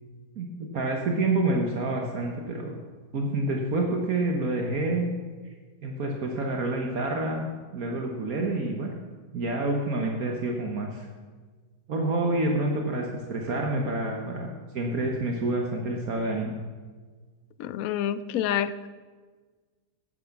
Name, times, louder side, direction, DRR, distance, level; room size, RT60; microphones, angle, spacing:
voice 1, 0.4-2.7 3.1-5.0 5.8-8.9 9.3-11.1 11.9-16.5, right 2 dB, 65° right, 1 dB, 1.6 m, -28 dB
voice 2, 17.6-18.9, left 9 dB, 70° left, 15 dB, 0.9 m, -28 dB
11.0 x 9.5 x 5.9 m, 1.4 s
omnidirectional pair, 1.7 m